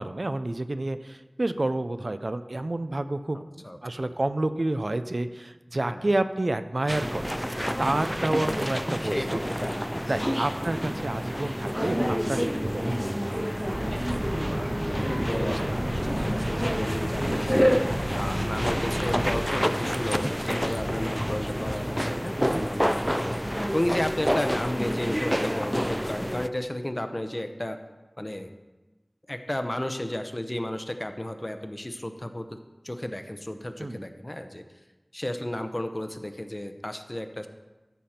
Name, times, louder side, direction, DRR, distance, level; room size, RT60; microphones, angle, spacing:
voice 1, 0.0-3.4 3.8-7.3 7.8-9.4 10.1-13.4 22.4-22.7 33.8-34.0, right 2 dB, 65° right, 11 dB, 0.5 m, -29 dB
voice 2, 3.3-4.1 5.9-6.1 9.0-10.4 12.0-12.7 14.3-27.8 28.2-28.5 29.3-32.5 32.8-34.6 35.1-37.5, left 1 dB, 35° left, 8 dB, 0.7 m, -33 dB
sound 1, 6.9-26.5, equal, ahead, 0.3 m, -28 dB
sound 2, 13.7-19.4, equal, 30° right, 1.0 m, -32 dB
sound 3, 17.9-18.9 20.8-22.0, left 1 dB, 60° left, 1.0 m, -38 dB
13.5 x 5.8 x 4.3 m, 1.1 s
wide cardioid pair, 45°, 0 cm